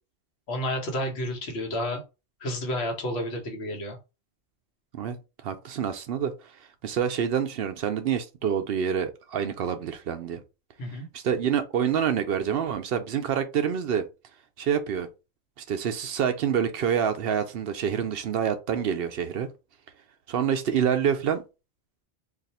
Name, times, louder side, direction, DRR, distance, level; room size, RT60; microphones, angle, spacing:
voice 1, 0.5-2.0 2.4-4.0 10.8-11.1, left 1 dB, 75° left, 1.2 m, -30 dB
voice 2, 5.4-6.3 6.8-10.4 11.1-14.1 14.6-15.1 15.7-19.5 20.3-21.4, right 8 dB, 65° right, 0.7 m, -27 dB
2.6 x 2.4 x 4.1 m
omnidirectional pair, 1.1 m